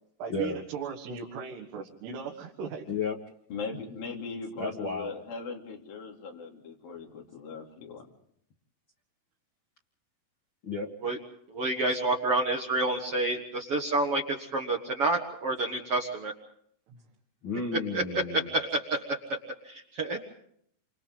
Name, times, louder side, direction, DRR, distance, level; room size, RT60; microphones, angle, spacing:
voice 1, 0.2-2.9 16.9-17.0, right 6 dB, 75° right, -1 dB, 3.7 m, -38 dB
voice 2, 3.5-8.1, left 4 dB, 60° left, -1 dB, 4.8 m, -39 dB
voice 3, 4.6-5.1 10.6-10.9 17.4-18.5, left 3 dB, 90° left, 0 dB, 1.0 m, -32 dB
voice 4, 11.5-16.3 17.9-19.4 19.6-20.2, right 2 dB, 55° right, 2 dB, 1.6 m, -29 dB
29.0 x 26.0 x 3.9 m, 0.68 s
omnidirectional pair, 4.8 m